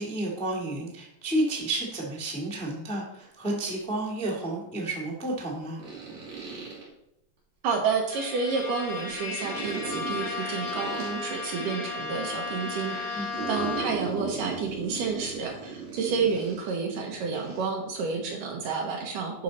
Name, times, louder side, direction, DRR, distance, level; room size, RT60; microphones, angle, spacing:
voice 1, 0.0-5.8 13.1-13.5, right 1 dB, 5° left, -3 dB, 0.5 m, -31 dB
sound 1, 3.2-3.3 5.8-6.8 9.4-11.1 13.3-16.8 17.3-17.7, right 5 dB, 50° right, 3.7 m, -37 dB
voice 2, 7.6-19.4, right 5 dB, 70° right, 1 dB, 2.3 m, -30 dB
Bowed string instrument, 8.1-14.2, left 4 dB, 40° left, 4.8 m, -34 dB
10.5 x 5.5 x 4.1 m, 0.80 s
omnidirectional pair, 4.6 m